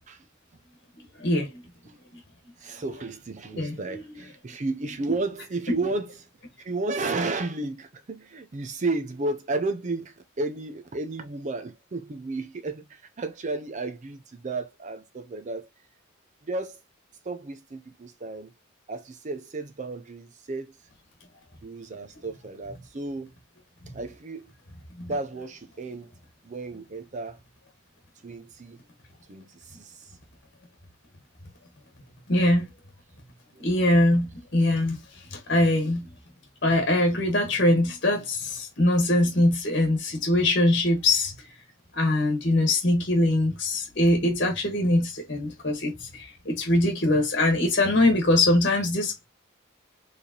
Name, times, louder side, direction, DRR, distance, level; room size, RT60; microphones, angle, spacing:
voice 1, 1.2-1.6 3.5-4.0 25.0-25.1 32.3-32.7 33.6-36.1 36.6-41.3 41.9-49.3, left 1 dB, 50° left, 1.3 m, -23 dB
voice 2, 2.6-6.3 6.6-15.7 16.4-16.8 17.2-18.5 18.9-20.8 21.6-23.3 23.9-24.5 25.0-26.1 26.4-27.4 28.2-28.8 29.3-30.2 33.5-33.7, right 3 dB, 35° right, 0.5 m, -33 dB
4.7 x 3.3 x 2.8 m
head